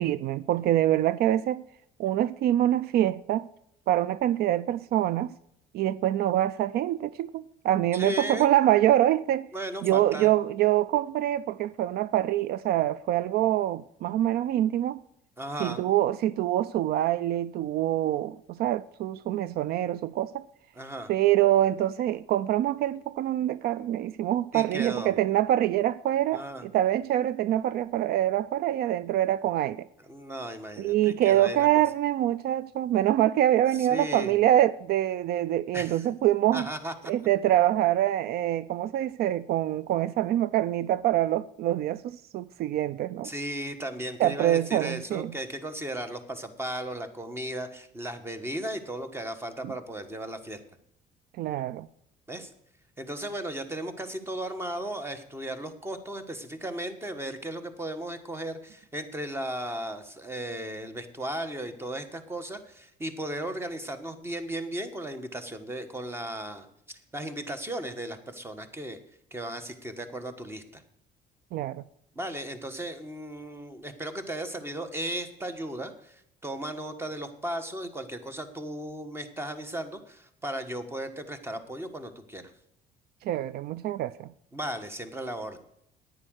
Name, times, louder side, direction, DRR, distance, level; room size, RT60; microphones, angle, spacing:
voice 1, 0.0-1.6 2.0-3.4 3.9-5.3 5.7-9.5 9.8-15.0 15.6-20.4 21.1-29.9 30.8-36.7 37.1-43.3 44.2-45.3 49.6-49.7 51.4-51.9 71.5-71.8 83.2-84.3, right 13 dB, 70° right, 0.4 m, -25 dB
voice 2, 7.9-8.5 9.5-10.3 15.4-15.9 20.7-21.1 24.5-25.1 26.3-26.6 30.1-31.8 33.7-34.3 35.7-36.1 36.5-37.1 43.2-50.6 52.3-52.5 53.0-69.0 69.3-70.8 72.1-82.5 84.5-85.6, right 1 dB, 15° right, 1.3 m, -36 dB
9.7 x 9.1 x 6.4 m
cardioid pair, 110°, 17 cm